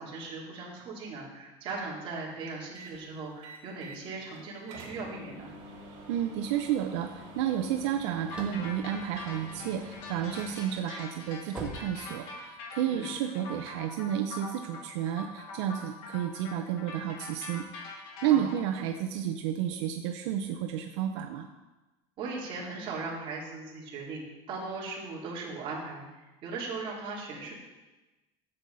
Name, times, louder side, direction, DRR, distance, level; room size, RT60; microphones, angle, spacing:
voice 1, 0.0-5.5 12.9-13.1 18.3-18.5 22.2-27.5, right 3 dB, 35° right, -5 dB, 3.2 m, -38 dB
sound 1, 2.8-3.0 3.4-4.0 4.3-4.4 4.7-11.0, equal, 55° right, 3.9 m, -47 dB
voice 2, 6.1-17.6 18.2-21.5, right 10 dB, 85° right, 5 dB, 0.8 m, -31 dB
sound 2, 8.3-18.6, left 3 dB, 65° left, 2.4 m, -43 dB
sound 3, 8.3-10.0 10.5-12.7, right 1 dB, 10° right, 1.7 m, -43 dB
12.5 x 7.9 x 4.1 m, 1.1 s
cardioid pair, 165°, 15 cm